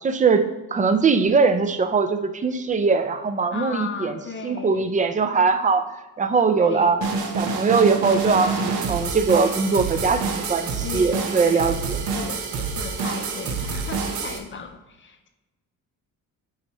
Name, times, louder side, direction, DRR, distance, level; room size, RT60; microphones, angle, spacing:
voice 1, 0.0-4.1 4.4-5.9 6.2-7.0 7.3-12.0, right 4 dB, 25° right, 9 dB, 0.3 m, -21 dB
voice 2, 3.5-4.9 6.6-7.0 10.8-11.8 12.1-15.3, left 5 dB, 35° left, 5 dB, 0.5 m, -36 dB
sound 1, 7.0-14.4, right 4 dB, 85° right, 0.9 m, -27 dB
9.3 x 4.4 x 3.0 m, 1.1 s
cardioid pair, 150°, 35 cm